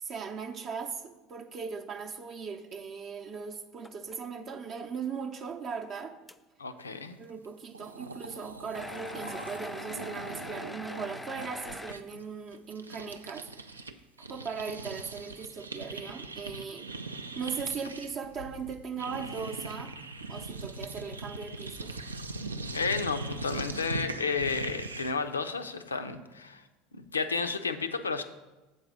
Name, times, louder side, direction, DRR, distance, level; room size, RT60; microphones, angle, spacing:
voice 1, 0.0-6.2 7.2-13.7 14.2-16.9 17.4-19.9 20.3-22.0, right 6 dB, 45° right, 4 dB, 0.6 m, -38 dB
sound 1, 3.8-4.3 4.7-4.8 5.5-5.6 6.3-6.4 8.7-11.9, left 2 dB, 10° left, 0.3 m, -42 dB
voice 2, 6.6-7.2 22.7-26.6 27.0-28.2, left 4 dB, 85° left, 9 dB, 0.4 m, -32 dB
sound 2, 7.4-7.5 7.7-13.9 14.2-25.3, right 2 dB, 90° right, 0.3 m, -41 dB
7.8 x 4.0 x 6.1 m, 1.1 s
figure-of-eight pair, 75°, 0 cm